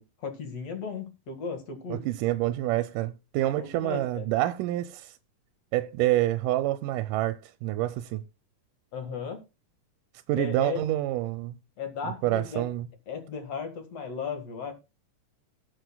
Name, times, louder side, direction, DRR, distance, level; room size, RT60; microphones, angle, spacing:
voice 1, 0.0-2.0 3.6-4.3 8.9-9.4 10.4-10.8 11.8-12.6 13.1-14.7, left 6 dB, 55° left, 2.7 m, -36 dB
voice 2, 1.9-5.1 5.7-8.2 10.3-11.6 12.0-12.9, right 15 dB, 85° right, 2.2 m, -27 dB
19.0 x 7.8 x 2.3 m
omnidirectional pair, 3.7 m